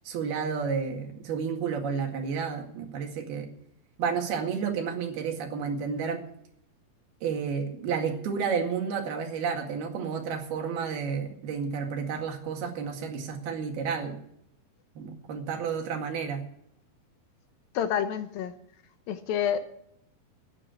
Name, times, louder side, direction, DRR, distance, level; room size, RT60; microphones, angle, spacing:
voice 1, 0.1-3.5 4.0-6.2 7.2-14.2 15.0-16.4, right 6 dB, 80° right, 3 dB, 4.0 m, -31 dB
voice 2, 17.7-18.5 19.1-19.8, left 9 dB, 75° left, 9 dB, 2.7 m, -28 dB
13.5 x 9.9 x 8.3 m, 0.71 s
omnidirectional pair, 4.4 m